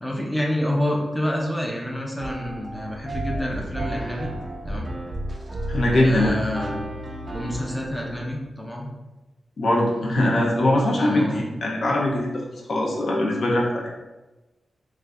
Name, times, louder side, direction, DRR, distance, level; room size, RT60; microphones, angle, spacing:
voice 1, 0.0-4.3 4.7-4.9 5.9-8.9 10.9-11.5, left 1 dB, 5° left, -2 dB, 0.7 m, -28 dB
sound 1, 2.2-8.3, right 1 dB, 30° right, 0.6 m, -32 dB
voice 2, 5.7-6.3 9.6-13.9, left 1 dB, 65° left, -3 dB, 0.7 m, -22 dB
3.3 x 2.5 x 3.5 m, 1.1 s
cardioid pair, 75°, 0 cm